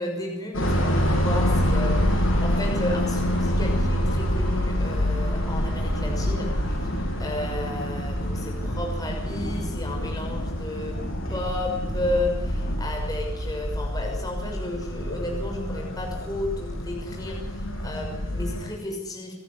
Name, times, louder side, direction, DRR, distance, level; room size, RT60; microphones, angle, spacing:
voice 1, 0.0-11.0 11.3-19.3, left 1 dB, 20° left, 1 dB, 6.2 m, -33 dB
sound 1, 0.5-18.7, equal, 85° left, 7.6 m, -27 dB
sound 2, 5.6-12.8, equal, 55° left, 6.7 m, -34 dB
29.0 x 13.5 x 9.8 m, 0.83 s
head